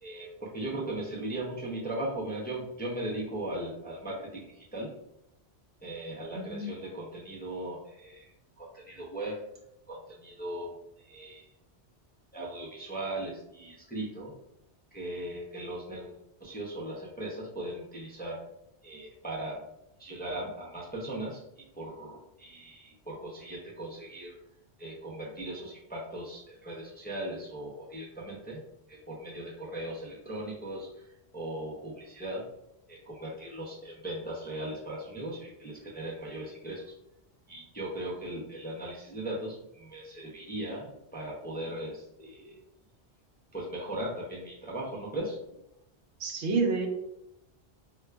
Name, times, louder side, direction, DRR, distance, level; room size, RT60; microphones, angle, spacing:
voice 1, 0.0-4.9 5.8-8.3 8.6-9.4 9.9-11.5 12.3-14.3 14.9-18.4 18.8-19.6 20.0-24.4 24.8-28.6 28.9-32.5 32.9-36.9 37.5-42.6 43.5-45.6, right 1 dB, 15° left, -5 dB, 0.4 m, -38 dB
voice 2, 6.2-6.7 46.2-46.9, right 4 dB, 85° right, 3 dB, 0.9 m, -29 dB
4.6 x 2.2 x 2.2 m, 0.85 s
omnidirectional pair, 1.1 m